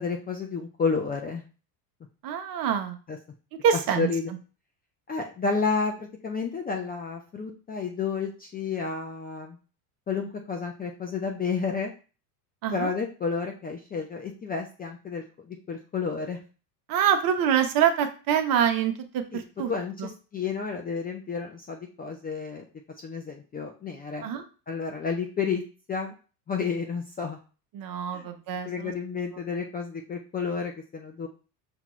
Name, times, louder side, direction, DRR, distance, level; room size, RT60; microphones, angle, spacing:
voice 1, 0.0-1.4 3.1-3.2 4.0-4.3 5.1-9.6 10.1-11.9 12.7-16.4 19.7-19.9 20.3-22.7 23.0-24.3 24.7-25.6 25.9-26.1 26.5-27.4 28.1-28.3 28.7-31.3, left 5 dB, 20° left, 2 dB, 0.4 m, -31 dB
voice 2, 2.2-3.0 3.6-4.1 12.6-12.9 16.9-19.7 20.0-20.1 24.2-24.4 27.7-28.9, right 8 dB, 45° right, 6 dB, 0.8 m, -25 dB
5.9 x 2.3 x 3.0 m, 0.35 s
supercardioid pair, 100°, 49 cm